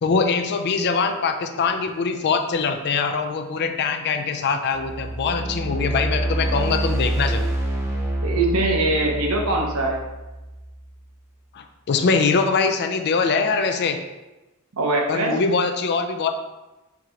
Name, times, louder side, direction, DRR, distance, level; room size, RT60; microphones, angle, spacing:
voice 1, 0.0-7.5 11.5-14.0 15.1-16.3, left 4 dB, 50° left, 7 dB, 0.4 m, -23 dB
sound 1, 4.7-10.9, right 1 dB, 15° right, 0.6 m, -27 dB
voice 2, 8.2-10.0 14.8-15.3, right 2 dB, 85° right, 0 dB, 0.8 m, -22 dB
4.6 x 2.9 x 3.7 m, 1.1 s
head